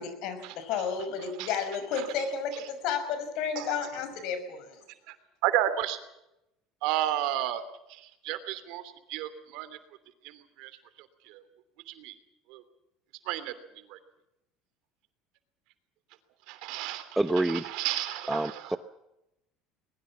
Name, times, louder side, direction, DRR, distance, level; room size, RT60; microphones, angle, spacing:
voice 1, 0.0-4.8, left 6 dB, 65° left, 10 dB, 5.7 m, -32 dB
voice 2, 3.5-3.9 5.1-5.2 5.4-6.0 6.8-7.6 7.9-9.8 10.2-11.4 11.9-12.1 12.5-12.6 13.2-14.0 16.5-18.8, right 12 dB, 70° right, 12 dB, 3.0 m, -33 dB
voice 3, 17.2-17.6 18.3-18.8, right 2 dB, 5° right, 13 dB, 0.8 m, -27 dB
21.5 x 21.0 x 7.3 m, 0.88 s
cardioid pair, 130°, 0 cm